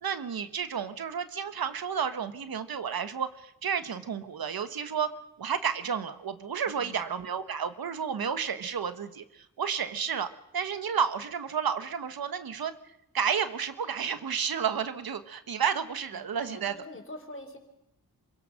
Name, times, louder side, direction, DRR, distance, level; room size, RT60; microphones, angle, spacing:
voice 1, 0.0-5.1 5.4-12.7 13.1-16.7, right 7 dB, 90° right, 10 dB, 1.5 m, -31 dB
voice 2, 6.7-7.0 16.1-17.6, left 1 dB, 35° left, 5 dB, 4.0 m, -45 dB
26.5 x 17.0 x 6.6 m, 0.84 s
wide cardioid pair, 90°, 35 cm